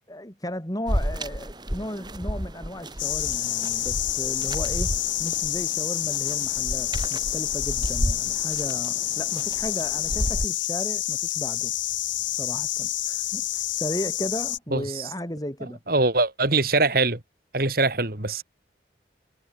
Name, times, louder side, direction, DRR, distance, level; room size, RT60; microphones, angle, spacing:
voice 1, 0.1-4.9 5.2-11.7 12.3-15.8, equal, 20° left, 3.5 m, -35 dB
sound 1, 0.9-10.5, equal, 25° right, 6.2 m, -32 dB
sound 2, 3.0-14.6, left 14 dB, 90° left, 1.3 m, -28 dB
voice 2, 14.7-15.1 15.9-17.2 17.5-18.4, right 3 dB, 50° right, 2.8 m, -23 dB
head